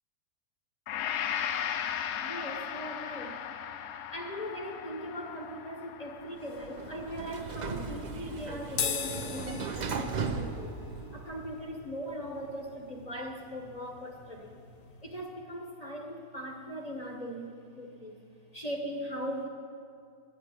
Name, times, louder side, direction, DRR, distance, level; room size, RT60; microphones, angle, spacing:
Gong, 0.9-8.9, left 9 dB, 85° left, 1.2 m, -37 dB
voice 1, 2.2-3.4 4.1-10.8 11.1-14.6 15.0-18.2 18.5-19.5, equal, 30° left, 1 dB, 0.8 m, -39 dB
Sliding door, 6.4-11.6, right 5 dB, 85° right, 0.3 m, -37 dB
sound 1, 8.7-15.3, left 7 dB, 70° left, 1.3 m, -40 dB
11.0 x 8.1 x 8.1 m, 2.3 s
omnidirectional pair, 1.7 m